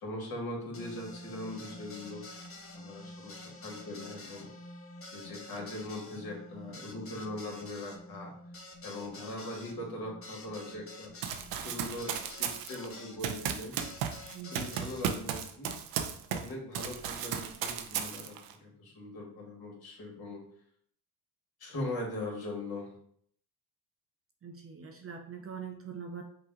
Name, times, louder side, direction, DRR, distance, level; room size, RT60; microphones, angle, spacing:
voice 1, 0.0-2.2 2.7-4.5 5.1-8.3 8.8-11.1 11.5-13.7 14.5-15.7 16.3-20.4 21.6-22.9, left 1 dB, 50° left, -1 dB, 2.0 m, -40 dB
sound 1, 0.7-13.2 13.8-15.1, left 2 dB, 30° left, 0.8 m, -48 dB
Run, 11.2-16.5 16.8-18.5, right 8 dB, 85° right, 0.7 m, -35 dB
voice 2, 14.3-14.7 24.4-26.2, right 6 dB, 30° right, 3 dB, 0.6 m, -43 dB
5.9 x 2.4 x 3.7 m, 0.65 s
supercardioid pair, 85°, 46 cm